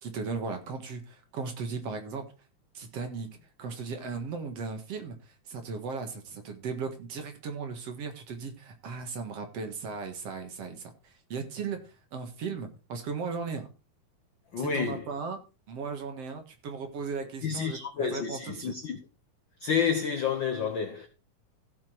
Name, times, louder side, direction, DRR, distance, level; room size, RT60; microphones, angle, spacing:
voice 1, 0.0-2.3 2.7-3.3 3.6-13.7 14.6-15.4 15.7-18.7, right 5 dB, 55° right, 2.5 m, -37 dB
voice 2, 14.5-15.0 17.4-19.0 19.6-21.1, left 6 dB, 65° left, 1.1 m, -29 dB
16.0 x 6.1 x 4.5 m
omnidirectional pair, 3.5 m